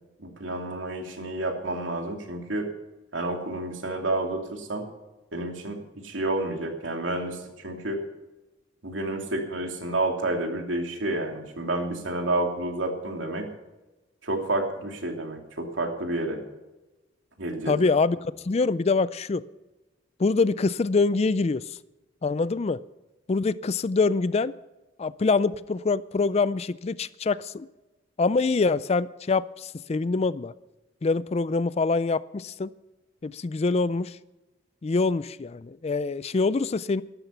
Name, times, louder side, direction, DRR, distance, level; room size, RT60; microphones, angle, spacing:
voice 1, 0.2-2.7 3.1-4.9 5.3-5.8 6.0-8.0 8.8-13.5 14.2-16.4 17.4-17.9, right 2 dB, 80° right, 3 dB, 2.8 m, -30 dB
voice 2, 17.7-19.4 20.2-21.6 22.2-22.8 23.3-24.5 25.0-27.7 28.2-30.5 31.0-32.7 33.2-34.2 34.8-37.0, left 4 dB, 35° left, 18 dB, 0.4 m, -25 dB
13.5 x 12.5 x 5.8 m, 1.1 s
head